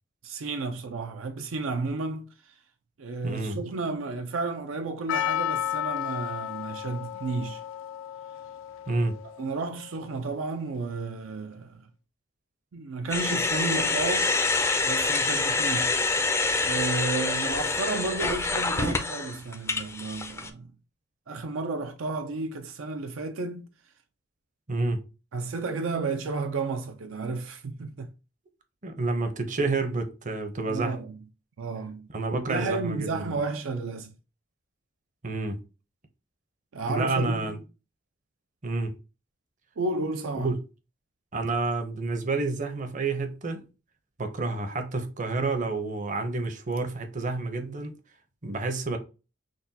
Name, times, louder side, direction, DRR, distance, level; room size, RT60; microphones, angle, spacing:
voice 1, 0.2-2.3 3.0-7.6 9.4-11.8 12.7-14.3 14.8-16.0 16.6-20.7 21.3-23.7 25.3-28.1 30.7-31.2 31.6-32.1 32.5-34.1 36.7-37.6 39.8-40.5, right 3 dB, 75° right, 0.5 m, -32 dB
voice 2, 3.2-3.6 8.9-9.2 24.7-25.0 28.8-31.0 32.1-33.4 35.2-35.6 36.9-37.6 38.6-38.9 40.3-40.6 41.3-43.7 44.2-47.9 48.4-49.0, right 3 dB, 40° right, 0.7 m, -29 dB
Percussion, 5.1-10.0, left 11 dB, 75° left, 0.4 m, -33 dB
sound 1, 13.1-20.5, left 3 dB, 15° left, 0.4 m, -26 dB
6.0 x 2.2 x 2.7 m
head